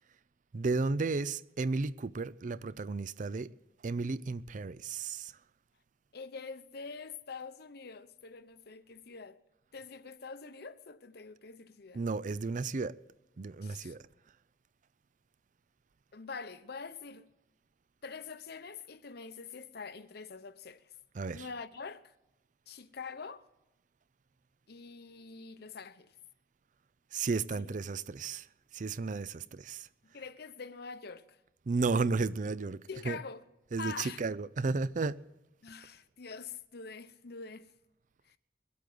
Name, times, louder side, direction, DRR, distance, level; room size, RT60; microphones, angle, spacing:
voice 1, 0.5-3.5 3.8-5.3 11.9-12.9 13.4-14.0 21.2-21.5 27.1-28.5 28.7-29.9 31.7-33.2 33.7-35.2, right 4 dB, 45° right, 0.5 m, -33 dB
voice 2, 6.1-9.4 9.7-12.0 13.6-13.9 16.1-17.3 18.0-20.9 21.3-22.1 22.7-23.5 24.7-26.1 27.6-27.8 30.0-31.4 32.9-33.4 33.8-34.2 35.6-37.7 38.3-38.4, left 5 dB, 60° left, 0.8 m, -45 dB
21.5 x 8.5 x 7.8 m
head